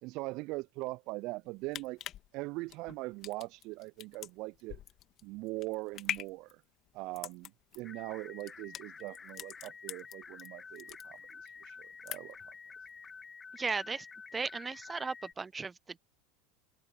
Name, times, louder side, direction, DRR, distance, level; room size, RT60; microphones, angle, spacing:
voice 1, 0.0-2.0 2.3-4.8 5.2-6.6 6.9-12.5, right 23 dB, 55° right, 0.5 m, -41 dB
sound 1, 1.4-10.5 10.8-11.5 11.8-12.5 12.9-13.0, left 12 dB, 45° left, 1.8 m, -43 dB
sound 2, 7.8-15.3, left 5 dB, 25° left, 1.9 m, -50 dB
voice 2, 13.5-14.1 14.3-15.7, right 4 dB, 20° right, 1.0 m, -36 dB
hypercardioid pair, 80°, 0 cm